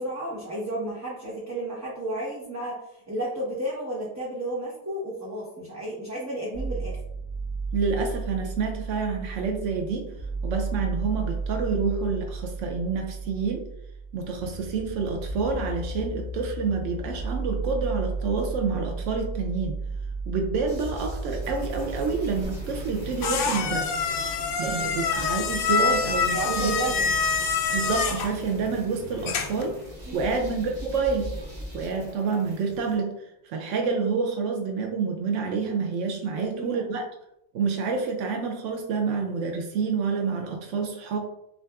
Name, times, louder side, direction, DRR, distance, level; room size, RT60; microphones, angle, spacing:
voice 1, 0.0-7.0 24.7-25.1 26.3-27.1 30.1-30.3 36.3-36.9, right 1 dB, 15° right, -7 dB, 0.8 m, -33 dB
sound 1, 6.5-24.5, right 3 dB, 55° right, 0.8 m, -34 dB
voice 2, 7.7-10.1 10.4-13.7 14.1-19.8 20.3-24.0 24.6-26.8 27.7-29.8 30.1-31.3 31.7-37.1 37.5-41.2, right 5 dB, 90° right, 3 dB, 0.9 m, -28 dB
sound 2, 20.7-33.0, equal, 35° right, 1.4 m, -41 dB
sound 3, 22.4-29.7, left 5 dB, 60° left, 0.6 m, -27 dB
6.4 x 2.5 x 2.3 m, 0.82 s
omnidirectional pair, 1.2 m